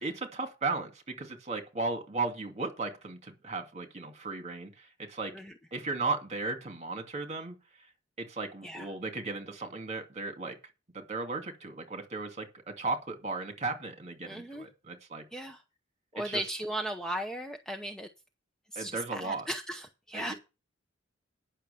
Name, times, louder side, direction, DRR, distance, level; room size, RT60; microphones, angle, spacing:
voice 1, 0.0-5.3 5.7-7.6 8.2-10.6 10.9-12.5 12.8-15.2 16.2-16.4 18.8-19.5 20.1-20.3, right 3 dB, 35° right, 2.3 m, -35 dB
voice 2, 14.3-14.7 15.3-15.6 16.1-18.1 18.7-20.3, right 1 dB, 5° left, 0.8 m, -36 dB
10.0 x 6.3 x 6.9 m
head